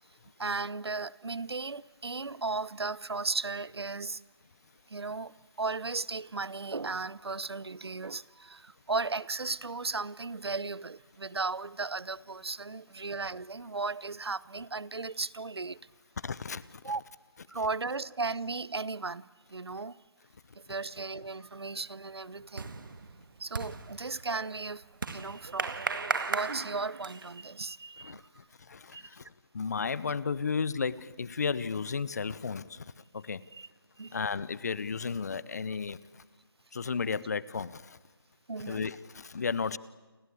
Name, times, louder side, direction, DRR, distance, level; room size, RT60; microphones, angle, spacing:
voice 1, 0.4-4.2 4.9-5.3 5.6-8.2 8.5-8.6 8.9-15.8 16.8-17.0 17.5-19.2 19.5-19.9 20.7-22.7 23.4-24.8 25.1-28.2 28.9-29.0 34.0-34.1 38.5-38.8, right 3 dB, 80° right, 0.9 m, -35 dB
voice 2, 16.2-17.0 17.4-17.7 28.0-28.2 28.6-33.4 34.1-36.2 36.7-38.0 38.6-39.8, left 5 dB, 40° left, 1.0 m, -34 dB
sound 1, 20.9-21.3 21.6-27.4, right 4 dB, 55° right, 2.0 m, -37 dB
29.5 x 23.5 x 8.7 m
figure-of-eight pair, 165°, 13 cm